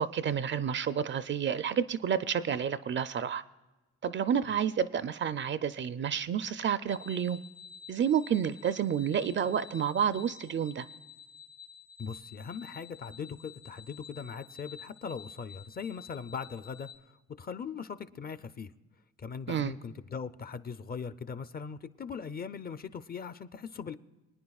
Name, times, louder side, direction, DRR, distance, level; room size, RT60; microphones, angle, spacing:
voice 1, 0.0-3.4 4.0-7.4 7.9-10.9 19.5-19.7, right 8 dB, 40° right, 14 dB, 0.4 m, -30 dB
sound 1, 6.9-17.0, left 6 dB, 55° left, 1.1 m, -51 dB
voice 2, 12.0-16.9 17.4-18.7 19.2-24.0, left 6 dB, 30° left, 12 dB, 0.5 m, -40 dB
26.5 x 9.5 x 2.3 m, 1.1 s
cardioid pair, 90°, 30 cm